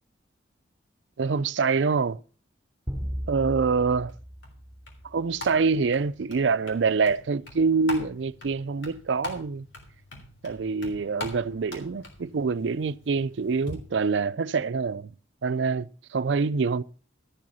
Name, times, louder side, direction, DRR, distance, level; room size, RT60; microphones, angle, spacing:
voice 1, 1.2-2.2 3.3-4.1 5.1-9.7 10.4-15.1 15.4-16.8, right 4 dB, 70° right, 0.5 m, -25 dB
sound 1, 2.9-5.4, equal, 15° right, 2.9 m, -36 dB
sound 2, 4.1-13.7, left 2 dB, 85° left, 3.5 m, -43 dB
13.0 x 7.7 x 5.4 m
head